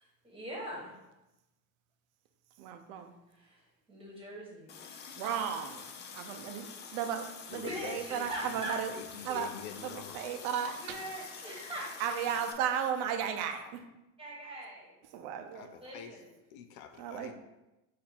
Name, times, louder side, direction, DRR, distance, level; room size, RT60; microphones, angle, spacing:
voice 1, 0.2-0.9 3.9-4.7 7.5-8.7 9.3-9.4 10.8-11.9 14.2-14.9 15.8-16.3, right 1 dB, 15° right, -4 dB, 1.4 m, -41 dB
voice 2, 2.6-3.1 5.2-5.8 6.1-6.7 6.9-8.9 9.2-9.5 9.8-11.0 12.0-13.8 15.1-15.7 17.0-17.3, right 8 dB, 75° right, 6 dB, 0.7 m, -35 dB
Water tap faucet, 4.7-12.5, left 6 dB, 30° left, 0.4 m, -47 dB
voice 3, 7.5-10.2 13.6-13.7 15.5-16.2 16.5-17.3, left 8 dB, 85° left, 7 dB, 0.6 m, -46 dB
4.3 x 2.7 x 4.2 m, 0.97 s
cardioid pair, 130°, 41 cm